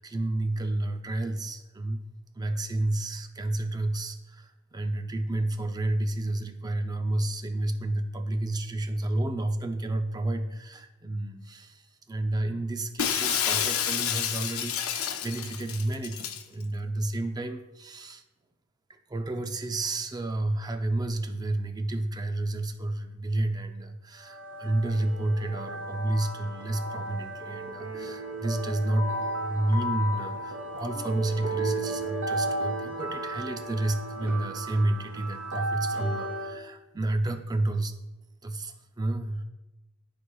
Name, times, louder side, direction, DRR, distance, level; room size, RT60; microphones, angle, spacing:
voice 1, 0.0-2.0 2.3-11.8 12.1-18.2 19.1-37.9 38.4-39.4, right 2 dB, 20° right, 6 dB, 0.5 m, -30 dB
Shatter, 13.0-16.4, left 9 dB, 70° left, 0.5 m, -29 dB
sound 1, 24.2-36.6, right 1 dB, 80° right, 1.8 m, -34 dB
12.5 x 4.7 x 2.3 m, 1.0 s
head